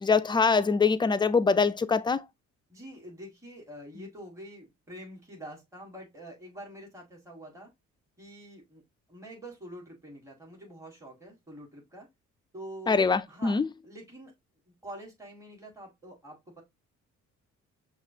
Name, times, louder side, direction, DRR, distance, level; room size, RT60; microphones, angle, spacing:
voice 1, 0.0-2.2 12.9-13.7, left 4 dB, 15° left, 0.3 m, -24 dB
voice 2, 2.7-7.7 8.2-8.8 9.1-12.1 12.5-14.3 14.7-16.6, right 1 dB, 10° right, 1.5 m, -46 dB
5.7 x 2.4 x 2.7 m
cardioid pair, 90°, 30 cm